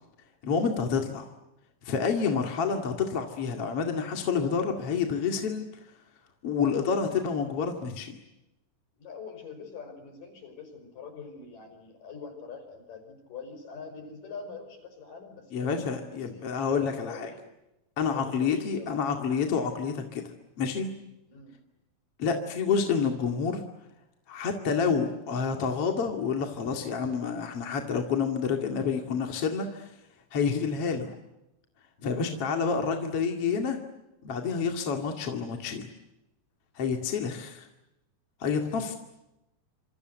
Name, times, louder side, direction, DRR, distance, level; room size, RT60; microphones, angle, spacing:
voice 1, 0.4-1.3 1.8-5.7 6.4-8.2 15.5-17.3 18.0-20.2 20.6-20.9 22.2-23.6 24.3-29.9 30.3-31.1 32.0-33.8 34.2-35.9 36.8-37.7 38.4-38.9, left 6 dB, 45° left, 4 dB, 2.9 m, -28 dB
voice 2, 9.0-17.5 18.0-19.0 21.3-21.6 37.2-37.5 38.9-39.0, left 5 dB, 65° left, 7 dB, 7.0 m, -44 dB
27.5 x 27.0 x 8.1 m, 0.93 s
omnidirectional pair, 4.2 m